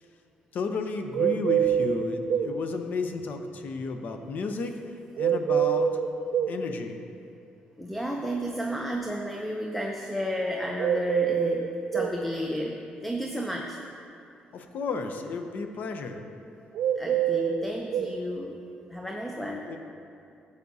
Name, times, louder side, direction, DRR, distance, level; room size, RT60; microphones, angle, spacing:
voice 1, 0.5-6.0 6.5-7.0 14.5-16.2 19.7-19.8, left 4 dB, 60° left, 6 dB, 0.7 m, -33 dB
sound 1, 1.1-2.5 5.2-6.6 10.8-12.2 16.7-18.1, right 9 dB, 80° right, 0.4 m, -25 dB
voice 2, 7.8-13.8 17.0-18.6 18.9-19.7, equal, 5° left, 1 dB, 0.6 m, -32 dB
13.5 x 8.1 x 2.7 m, 2.6 s
cardioid pair, 110°, 3 cm